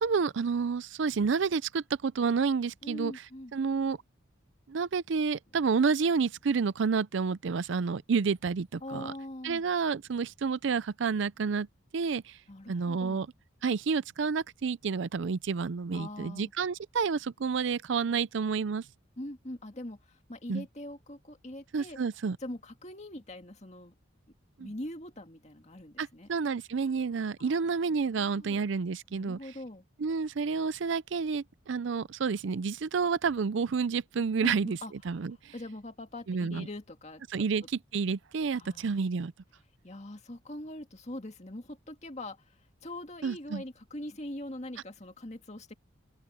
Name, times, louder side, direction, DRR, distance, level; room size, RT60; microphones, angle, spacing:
voice 1, 0.0-3.1 3.5-4.0 4.7-9.1 9.4-11.7 11.9-12.4 12.7-13.3 13.6-18.8 20.5-20.6 21.7-22.4 24.6-24.7 26.0-29.4 30.0-34.8 35.1-35.5 36.3-36.7 37.3-37.6 37.9-39.3 43.2-43.6, right 5 dB, 65° right, 0.5 m, -29 dB
voice 2, 2.8-3.5 8.8-9.6 12.5-13.2 15.9-16.5 19.2-22.0 22.4-23.9 24.6-26.3 26.8-26.9 27.4-27.6 28.1-28.6 29.1-29.8 34.4-34.9 35.5-37.5 38.6-38.9 39.8-45.7, left 1 dB, 35° left, 2.1 m, -42 dB
open air
head